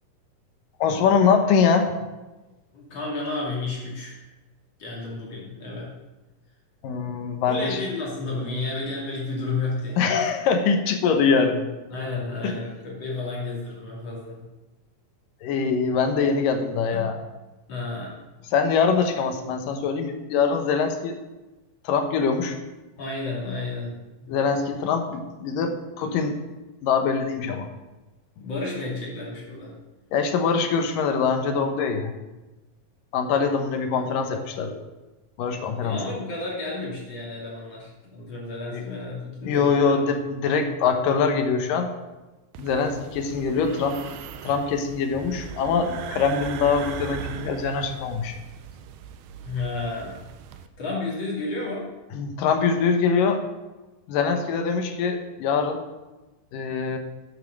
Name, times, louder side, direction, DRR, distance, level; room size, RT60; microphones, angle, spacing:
voice 1, 0.8-2.0 6.8-7.8 10.0-11.6 12.4-12.6 15.4-17.2 18.5-21.2 21.8-22.6 24.3-26.4 26.8-27.7 30.1-32.2 33.1-34.8 35.4-36.0 38.7-38.9 39.5-41.9 42.6-44.0 44.4-48.4 52.1-53.4 54.1-55.8 56.5-57.0, left 5 dB, 75° left, 5 dB, 2.6 m, -23 dB
voice 2, 2.7-4.2 4.8-5.9 7.5-10.3 11.9-14.4 16.9-17.1 17.7-18.1 23.0-24.3 26.0-26.2 28.4-29.7 35.8-40.0 49.4-50.2 50.8-51.9, left 3 dB, 45° left, -4 dB, 3.4 m, -32 dB
sound 1, 42.5-50.7, right 8 dB, 90° right, 2.5 m, -39 dB
10.0 x 7.1 x 6.4 m, 1.1 s
omnidirectional pair, 4.1 m